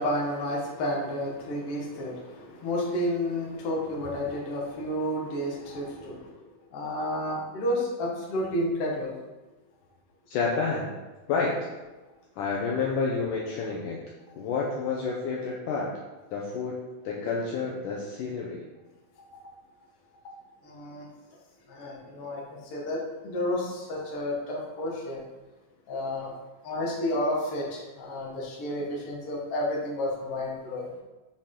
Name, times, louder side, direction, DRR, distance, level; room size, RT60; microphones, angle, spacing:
voice 1, 0.0-6.2 6.7-9.1 20.7-21.1 21.7-22.4 22.7-25.2 25.9-26.3 26.6-30.9, left 1 dB, 50° left, -3 dB, 2.0 m, -31 dB
voice 2, 10.3-10.9 11.3-11.5 12.4-14.0 14.3-15.9 16.3-16.7 17.0-18.6, left 4 dB, 75° left, -2 dB, 2.1 m, -29 dB
6.5 x 5.9 x 3.8 m, 1.1 s
omnidirectional pair, 4.2 m